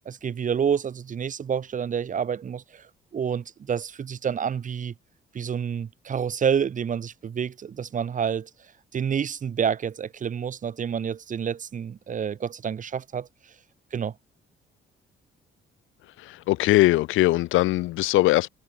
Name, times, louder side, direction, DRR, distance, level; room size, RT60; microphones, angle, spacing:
voice 1, 0.1-2.9 3.1-4.9 5.3-8.5 8.9-13.3 13.9-14.1, right 7 dB, 40° right, 0.8 m, -28 dB
voice 2, 16.2-18.5, left 17 dB, 85° left, 0.6 m, -21 dB
cardioid pair, 90°, 20 cm